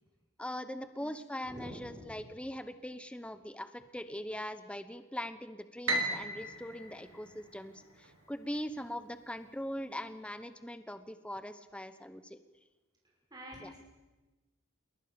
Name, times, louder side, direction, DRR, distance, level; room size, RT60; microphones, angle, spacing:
voice 1, 0.4-12.4 13.6-13.7, equal, 5° left, 10 dB, 1.0 m, -41 dB
voice 2, 1.5-2.2 13.3-13.8, equal, 20° right, -2 dB, 5.8 m, -47 dB
Piano, 5.9-8.1, right 1 dB, 65° right, 4.6 m, -36 dB
28.5 x 22.0 x 7.1 m, 1.2 s
head